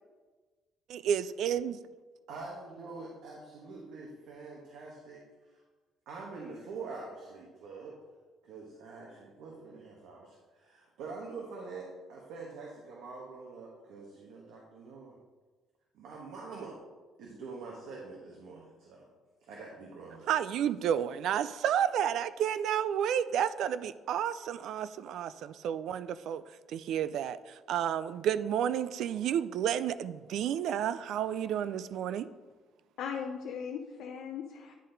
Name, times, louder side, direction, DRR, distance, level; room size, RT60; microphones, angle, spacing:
voice 1, 0.9-1.8 20.3-26.4 26.7-32.3, right 9 dB, 60° right, 15 dB, 0.3 m, -31 dB
voice 2, 2.3-5.2 5.5-5.6 6.1-8.0 8.4-15.2 15.9-16.8 17.2-19.1 19.4-20.3, right 4 dB, 75° right, -2 dB, 1.2 m, -45 dB
voice 3, 33.0-34.7, left 7 dB, 65° left, 1 dB, 0.6 m, -38 dB
10.5 x 4.1 x 3.9 m, 1.3 s
cardioid pair, 170°, 0 cm